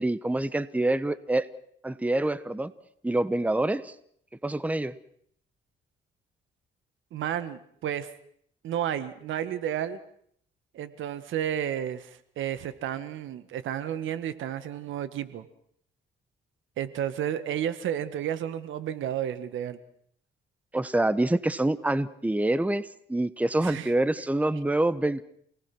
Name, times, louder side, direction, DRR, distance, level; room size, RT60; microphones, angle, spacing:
voice 1, 0.0-1.5 1.8-2.7 3.0-3.9 4.4-4.9 20.7-25.2, right 1 dB, 5° right, 15 dB, 1.0 m, -26 dB
voice 2, 7.1-8.1 8.6-10.0 10.7-15.5 16.8-19.8 23.6-23.9, right 10 dB, 80° right, 12 dB, 1.7 m, -32 dB
28.5 x 19.0 x 6.1 m, 0.65 s
cardioid pair, 90°, 20 cm